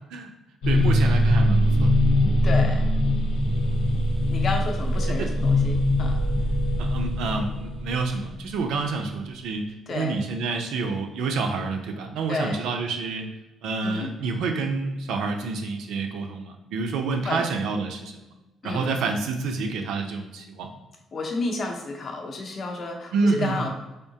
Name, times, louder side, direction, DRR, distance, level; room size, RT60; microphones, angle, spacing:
sound 1, 0.6-8.7, left 1 dB, 85° left, 0.8 m, -22 dB
voice 1, 0.7-2.0 5.2-5.3 6.8-13.3 13.6-18.3 18.6-20.7 23.1-23.7, right 4 dB, 85° right, 4 dB, 0.5 m, -28 dB
voice 2, 2.4-2.9 4.3-6.2 9.9-10.2 12.3-12.6 13.8-14.1 17.2-17.4 18.6-18.9 21.1-23.7, left 3 dB, 40° left, 2 dB, 0.6 m, -31 dB
3.7 x 3.5 x 2.7 m, 1.0 s
cardioid pair, 150°, 0 cm